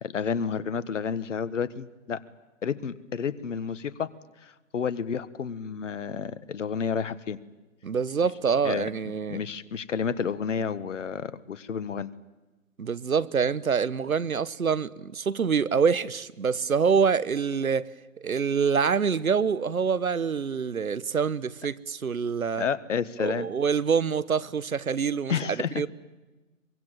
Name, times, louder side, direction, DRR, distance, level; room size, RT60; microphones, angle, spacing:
voice 1, 0.0-2.2 2.6-4.1 4.4-7.4 8.6-8.9 9.3-12.1 22.6-23.5 25.3-25.9, left 6 dB, 60° left, 1.5 m, -30 dB
voice 2, 7.8-9.4 12.8-17.9 18.2-22.6 23.2-25.3 25.8-25.9, right 6 dB, 85° right, 1.2 m, -26 dB
23.5 x 23.0 x 9.1 m
figure-of-eight pair, 145°, 41 cm